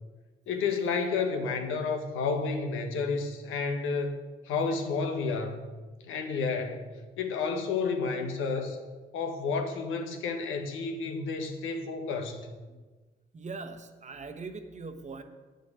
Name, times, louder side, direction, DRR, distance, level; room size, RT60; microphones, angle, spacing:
voice 1, 0.5-4.2 4.4-5.6 6.1-6.9 7.2-8.8 9.1-12.5, left 4 dB, 90° left, 5 dB, 1.3 m, -31 dB
voice 2, 13.3-15.2, right 4 dB, 35° right, 7 dB, 1.1 m, -41 dB
8.8 x 6.7 x 8.0 m, 1.3 s
cardioid pair, 90°, 20 cm